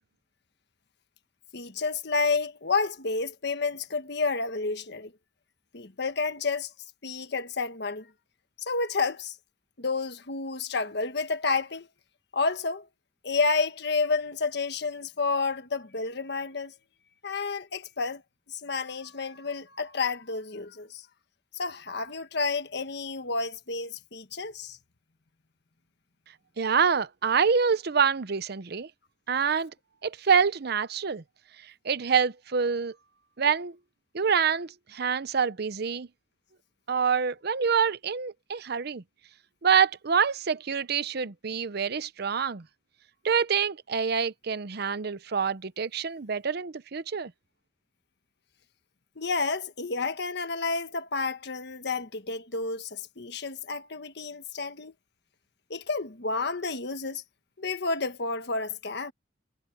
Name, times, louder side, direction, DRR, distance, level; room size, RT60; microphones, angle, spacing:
voice 1, 1.5-5.1 5.7-6.7 7.0-8.1 8.6-9.3 9.8-11.9 12.3-12.9 13.2-16.7 17.2-18.2 18.5-21.0 21.5-24.8 49.2-54.9 55.7-57.2 57.6-59.1, left 4 dB, 65° left, 1.4 m, -30 dB
voice 2, 26.6-28.9 29.3-29.7 30.0-31.2 31.6-32.9 33.4-33.8 34.1-36.1 36.9-39.0 39.6-42.6 43.2-47.3, right 6 dB, 60° right, 0.7 m, -26 dB
head